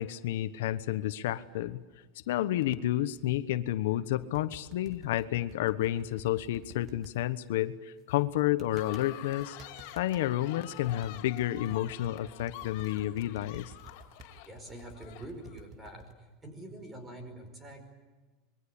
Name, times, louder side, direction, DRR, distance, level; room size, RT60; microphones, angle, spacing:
voice 1, 0.0-1.8 2.3-9.6 9.9-13.7, left 14 dB, 75° left, 13 dB, 1.1 m, -30 dB
sound 1, 4.2-7.1 8.4-9.1 9.4-10.2 10.7-16.1, right 2 dB, 25° right, 2.0 m, -52 dB
sound 2, 8.7-15.6, left 15 dB, 55° left, 3.6 m, -47 dB
voice 2, 14.4-17.8, right 1 dB, 10° right, 7 dB, 4.9 m, -45 dB
26.5 x 22.0 x 8.6 m, 1.3 s
supercardioid pair, 170°, 0 cm